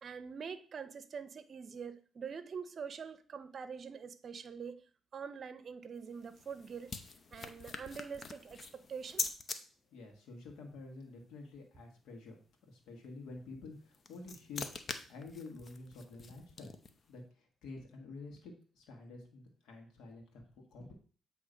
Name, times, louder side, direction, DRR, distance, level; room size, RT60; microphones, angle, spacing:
voice 1, 0.0-4.8 5.1-6.9 7.3-9.3, right 6 dB, 50° right, 0.6 m, -45 dB
sound 1, 6.0-9.6 13.7-17.1, left 4 dB, 45° left, 0.7 m, -44 dB
voice 2, 9.9-12.4 12.7-14.7 15.1-16.7 17.1-20.9, left 3 dB, 85° left, 1.5 m, -49 dB
8.0 x 3.0 x 5.0 m
cardioid pair, 90°, 0 cm